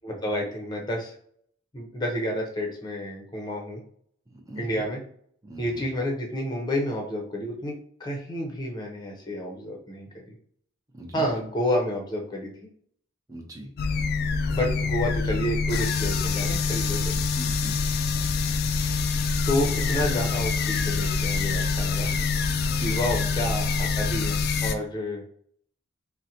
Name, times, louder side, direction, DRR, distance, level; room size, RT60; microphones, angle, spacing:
voice 1, 0.0-1.1 1.7-3.8 4.6-5.0 5.6-7.7 8.0-10.1 11.1-12.5 14.5-17.2 19.5-22.1 22.8-25.2, equal, 20° left, 0 dB, 0.7 m, -30 dB
voice 2, 4.3-4.8 5.4-5.8 10.9-11.4 13.3-13.7 17.1-17.8 22.8-22.9 23.2-23.3, right 1 dB, 20° right, 1 dB, 0.6 m, -41 dB
sound 1, 13.8-24.7, left 4 dB, 55° left, 0.3 m, -25 dB
3.8 x 2.2 x 2.8 m, 0.62 s
head